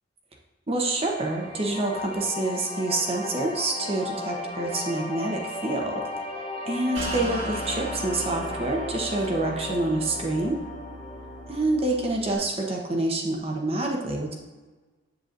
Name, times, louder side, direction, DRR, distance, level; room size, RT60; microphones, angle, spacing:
voice 1, 0.7-6.0 6.6-10.6 11.5-14.4, right 2 dB, 30° right, 0 dB, 1.0 m, -27 dB
sound 1, 1.0-12.1, left 2 dB, 30° left, 1.0 m, -36 dB
sound 2, 6.9-12.3, right 1 dB, 75° right, 2.0 m, -37 dB
7.9 x 7.7 x 2.6 m, 1.3 s
head